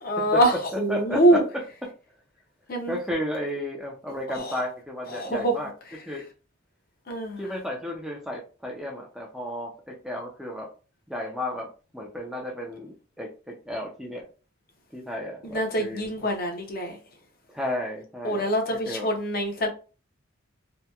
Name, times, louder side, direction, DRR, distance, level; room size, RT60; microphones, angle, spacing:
voice 1, 0.0-1.4 2.7-3.0 4.4-4.6 5.1-5.5 7.1-7.4 15.4-17.0 18.2-19.7, right 1 dB, 45° left, 0.6 m, -24 dB
voice 2, 0.7-1.4 2.9-5.7 6.1-6.2 7.4-10.7 11.1-11.7 11.9-14.3 14.9-16.0 17.5-18.5 18.7-19.1, left 1 dB, 5° right, 0.3 m, -33 dB
2.8 x 2.1 x 2.2 m
head